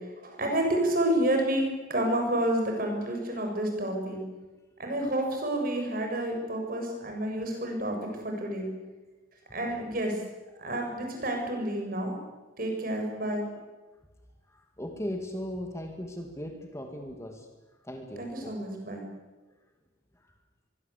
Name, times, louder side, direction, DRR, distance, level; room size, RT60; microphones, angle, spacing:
voice 1, 0.2-4.2 4.8-8.0 8.2-8.7 9.5-10.2 10.6-12.2 12.6-13.4 18.2-19.0, right 1 dB, 45° right, 2 dB, 7.3 m, -29 dB
voice 2, 13.2-13.7 14.5-17.5 17.8-18.7 20.2-20.3, equal, 15° left, 4 dB, 2.2 m, -38 dB
24.0 x 23.0 x 8.4 m, 1.2 s
head